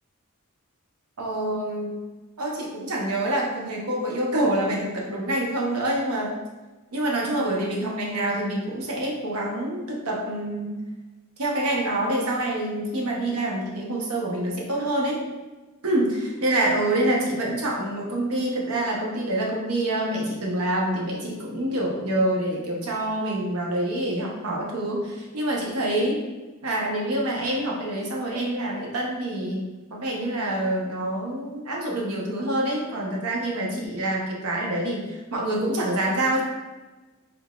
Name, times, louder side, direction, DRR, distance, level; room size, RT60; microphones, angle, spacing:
voice 1, 1.2-2.0 2.4-6.4 6.9-10.7 11.4-15.2 15.8-26.2 26.6-36.4, right 1 dB, 80° right, -2 dB, 0.8 m, -26 dB
3.8 x 3.5 x 2.3 m, 1.2 s
head